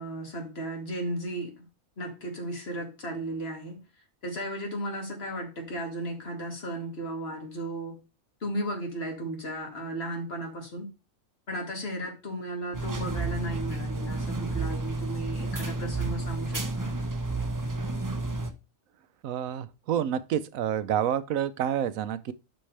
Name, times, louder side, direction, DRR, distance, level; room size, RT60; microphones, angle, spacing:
voice 1, 0.0-1.7 2.0-3.8 4.2-8.0 8.4-10.9 11.5-16.9, right 1 dB, 50° left, 2.4 m, -35 dB
sound 1, 12.7-18.5, right 2 dB, 20° right, 0.7 m, -31 dB
voice 2, 19.2-22.3, right 9 dB, 90° right, 1.1 m, -28 dB
11.5 x 4.4 x 3.3 m
omnidirectional pair, 1.4 m